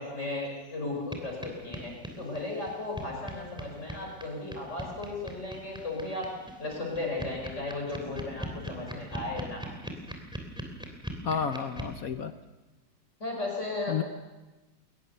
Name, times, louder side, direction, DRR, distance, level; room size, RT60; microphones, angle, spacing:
voice 1, 0.0-6.3 6.6-9.9 13.2-14.0, left 2 dB, 40° left, -1 dB, 5.1 m, -35 dB
sound 1, 1.1-1.2 1.4-1.5 1.7-12.0, equal, ahead, 3.0 m, -39 dB
voice 2, 11.2-12.3 13.9-14.0, left 7 dB, 60° left, 9 dB, 1.2 m, -30 dB
22.0 x 20.0 x 6.8 m, 1.1 s
omnidirectional pair, 2.0 m